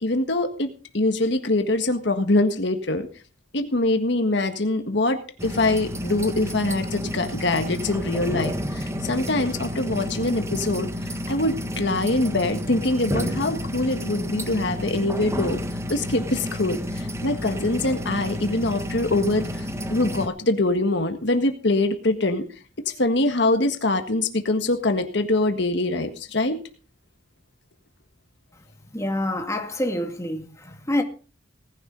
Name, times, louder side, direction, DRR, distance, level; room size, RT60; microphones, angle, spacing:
voice 1, 0.0-3.1 3.5-10.9 11.3-15.6 15.9-19.6 19.9-22.4 22.8-26.6, left 2 dB, 70° left, 1.6 m, -24 dB
sound 1, 5.4-20.3, equal, 15° right, 1.5 m, -30 dB
voice 2, 28.9-31.0, left 1 dB, 15° left, 2.2 m, -27 dB
18.5 x 11.0 x 4.0 m
head